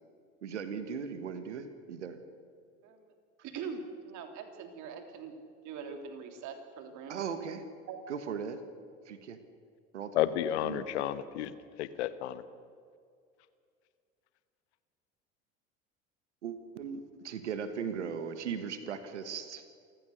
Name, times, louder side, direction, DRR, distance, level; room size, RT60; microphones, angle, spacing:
voice 1, 0.4-2.2 7.1-7.7 8.1-8.6 9.1-9.4 9.9-10.2 10.6-11.1 16.4-19.6, right 7 dB, 85° right, 10 dB, 1.6 m, -38 dB
voice 2, 2.8-3.1 3.4-5.3 5.6-7.2 7.9-8.0, right 6 dB, 55° right, 5 dB, 3.3 m, -42 dB
voice 3, 10.1-12.4, left 12 dB, 75° left, 14 dB, 1.1 m, -32 dB
27.5 x 15.5 x 6.6 m, 2.3 s
hypercardioid pair, 70°, 34 cm